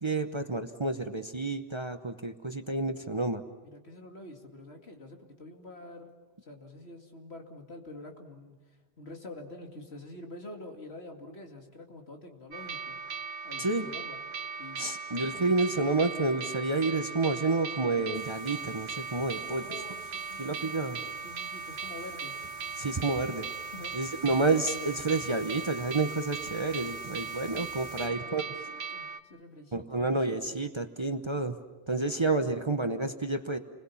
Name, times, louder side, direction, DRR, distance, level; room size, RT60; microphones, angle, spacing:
voice 1, 0.0-3.4 13.6-13.9 14.8-19.7 20.4-21.0 22.8-23.5 23.9-28.4 29.7-31.6 31.9-33.6, right 3 dB, 25° right, 7 dB, 0.9 m, -29 dB
voice 2, 3.6-6.1 6.5-8.5 9.0-13.0 13.4-14.2 14.6-14.8 19.6-22.3 23.7-24.1 28.0-30.0, left 2 dB, 70° left, 3 dB, 2.7 m, -47 dB
sound 1, 12.5-29.2, right 5 dB, 70° right, 1.2 m, -39 dB
sound 2, 18.1-28.1, left 1 dB, 20° left, 2.1 m, -53 dB
29.5 x 21.5 x 7.1 m, 1.2 s
omnidirectional pair, 1.1 m